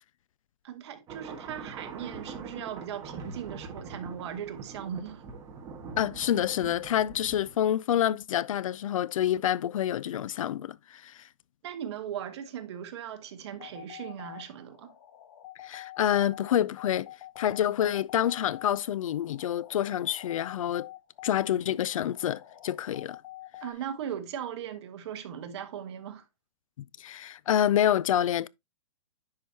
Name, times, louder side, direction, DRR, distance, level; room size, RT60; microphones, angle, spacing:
voice 1, 0.6-5.2 11.6-14.9 23.6-26.2, right 9 dB, 50° right, 1.3 m, -38 dB
sound 1, 1.1-7.6, right 5 dB, 20° right, 1.5 m, -43 dB
voice 2, 6.0-11.3 15.6-17.1 17.4-20.9 21.2-23.2 26.8-28.5, left 11 dB, 75° left, 0.4 m, -27 dB
sound 2, 13.5-23.7, left 14 dB, 45° left, 1.4 m, -47 dB
10.0 x 4.8 x 2.7 m
hypercardioid pair, 160°, 17 cm